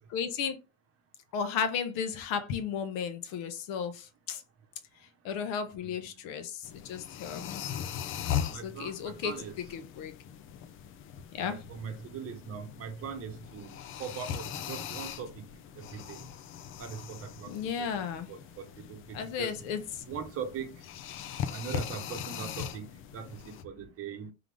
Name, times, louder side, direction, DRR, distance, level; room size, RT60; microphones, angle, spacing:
voice 1, 0.1-0.6 1.3-4.4 5.2-7.7 8.5-9.4 9.7-10.1 11.3-11.6 17.5-18.3 19.1-19.8, left 7 dB, 55° left, 1.0 m, -34 dB
voice 2, 5.8-6.2 7.7-7.8 8.5-9.5 11.4-15.5 15.8-16.3 16.8-17.5 17.8-19.5 20.1-20.8 21.5-24.3, right 6 dB, 35° right, 1.0 m, -41 dB
sound 1, 6.6-23.6, left 9 dB, 35° left, 0.5 m, -40 dB
3.9 x 3.4 x 3.4 m
supercardioid pair, 120°, 39 cm